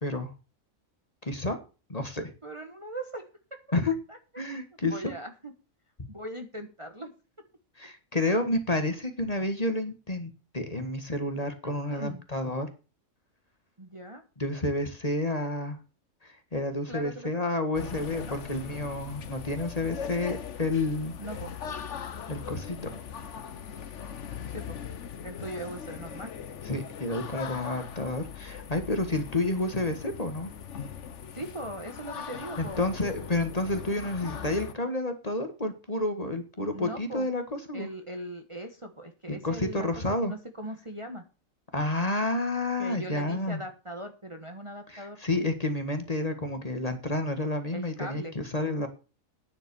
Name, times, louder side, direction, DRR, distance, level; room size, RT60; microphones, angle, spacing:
voice 1, 0.0-0.3 1.3-1.6 1.9-2.3 3.7-4.0 4.4-5.1 7.8-12.7 14.4-15.8 16.2-21.1 22.3-22.9 26.6-30.5 32.6-37.9 39.3-40.3 41.7-43.6 44.9-48.9, left 2 dB, 30° left, 7 dB, 1.7 m, -30 dB
voice 2, 2.4-3.2 4.1-4.2 4.9-5.5 6.1-7.1 11.9-12.2 13.8-14.2 16.9-17.3 18.3-18.4 21.2-21.5 24.5-24.8 25.2-26.3 31.3-32.9 36.7-37.3 37.7-41.2 42.8-45.2 47.7-48.3, right 1 dB, 25° right, 5 dB, 1.3 m, -39 dB
sound 1, 17.7-34.7, left 7 dB, 60° left, 1.3 m, -40 dB
9.8 x 7.6 x 7.0 m, 0.32 s
omnidirectional pair, 1.4 m